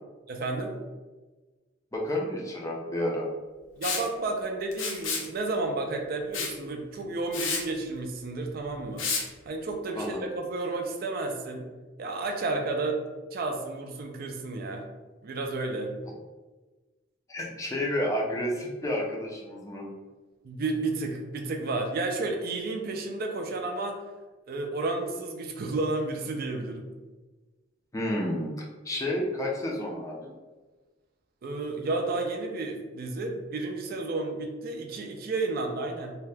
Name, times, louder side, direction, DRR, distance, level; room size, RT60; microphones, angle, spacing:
voice 1, 0.3-0.8 3.8-9.1 9.5-11.7 12.0-13.0 13.3-14.9 15.2-15.9 20.4-24.0 24.5-26.9 31.4-36.2, right 3 dB, 50° right, 3 dB, 0.4 m, -31 dB
voice 2, 1.9-3.3 10.0-10.2 17.3-19.9 27.9-28.5 28.8-30.3, left 1 dB, 15° left, -2 dB, 0.4 m, -30 dB
Liquid, 3.8-4.1 4.7-5.3 6.3-6.6 7.0-7.1 7.3-7.6 9.0-9.2, left 4 dB, 80° left, 0.5 m, -30 dB
2.7 x 2.1 x 3.2 m, 1.3 s
head